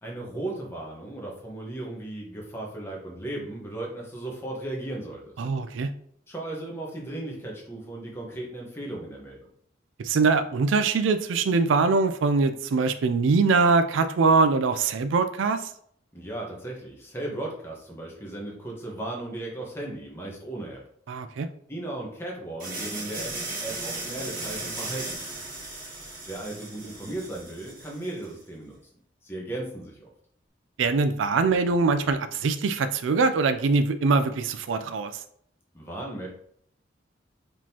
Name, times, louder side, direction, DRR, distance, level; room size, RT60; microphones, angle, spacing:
voice 1, 0.0-5.3 6.3-9.4 16.1-20.8 21.7-25.4 26.3-28.7 29.2-30.1 35.7-36.3, right 1 dB, 15° left, -2 dB, 1.2 m, -36 dB
voice 2, 5.4-5.9 10.0-15.7 21.1-21.5 30.8-35.1, right 4 dB, 85° right, 10 dB, 0.4 m, -23 dB
sound 1, 22.6-28.3, right 2 dB, 45° right, 1.7 m, -36 dB
4.9 x 3.7 x 2.8 m, 0.66 s
head